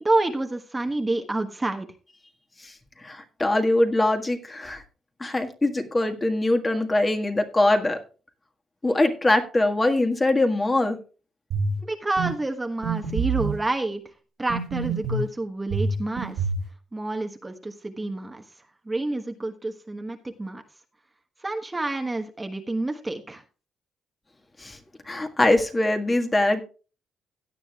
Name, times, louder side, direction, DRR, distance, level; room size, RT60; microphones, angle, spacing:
voice 1, 0.0-1.9 11.8-14.0 14.4-16.5 16.9-18.4 18.8-20.6 21.4-23.4, right 2 dB, 20° right, 5 dB, 1.2 m, -28 dB
voice 2, 2.6-4.8 5.2-8.0 8.8-11.0 24.6-24.8 25.1-26.6, left 2 dB, 20° left, 5 dB, 1.7 m, -23 dB
sound 1, 11.5-11.8 12.2-12.3 12.8-13.6 14.5-15.3 15.7-16.7, right 4 dB, 85° right, 2.8 m, -26 dB
17.0 x 9.3 x 2.4 m, 0.34 s
cardioid pair, 90°, 0 cm